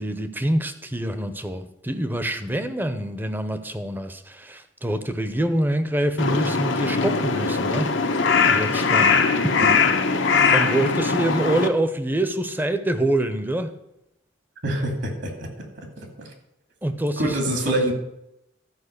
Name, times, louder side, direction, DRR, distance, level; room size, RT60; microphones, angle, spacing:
voice 1, 0.0-7.9 8.4-9.6 10.5-13.7 16.8-17.6, right 1 dB, 10° right, 10 dB, 0.7 m, -25 dB
Crow, 6.2-11.7, left 5 dB, 85° left, 1.0 m, -21 dB
voice 2, 14.6-15.5 16.2-16.3 17.2-17.9, right 1 dB, 65° right, 3 dB, 2.4 m, -25 dB
12.0 x 5.2 x 6.6 m, 0.84 s
head